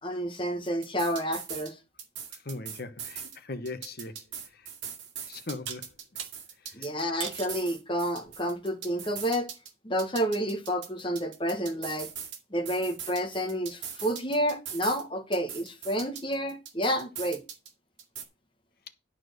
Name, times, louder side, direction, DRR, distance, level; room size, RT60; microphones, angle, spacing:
voice 1, 0.0-1.8 6.7-9.5 9.8-12.1 12.5-17.4, equal, 25° left, 1.2 m, -30 dB
sound 1, 0.6-1.7 2.0-3.4 3.6-7.0 7.3-9.7 10.0-12.4 12.6-15.0 15.3-17.7 18.0-18.2, right 7 dB, 65° right, 2.2 m, -41 dB
voice 2, 2.3-4.7 5.2-6.0 6.6-6.9 18.9-19.0, left 2 dB, 50° left, 1.0 m, -40 dB
sound 2, 4.3-4.4 5.7-6.3 7.2-7.6 8.2-8.7, right 8 dB, 80° right, 1.3 m, -38 dB
11.0 x 4.3 x 6.5 m
head